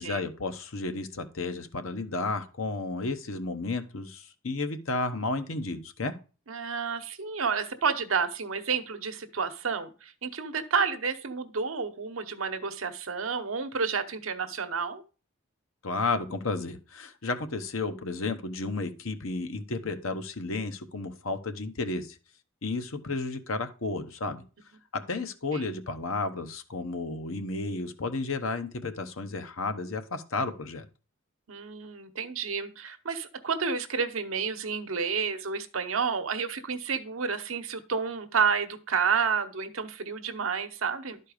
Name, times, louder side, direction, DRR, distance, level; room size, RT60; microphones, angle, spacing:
voice 1, 0.0-6.1 15.8-22.2 22.6-24.4 24.9-30.9, left 3 dB, 70° left, 8 dB, 1.0 m, -32 dB
voice 2, 6.5-15.0 25.5-25.7 31.5-41.2, right 5 dB, 70° right, 8 dB, 0.9 m, -30 dB
11.5 x 4.5 x 4.9 m, 0.35 s
head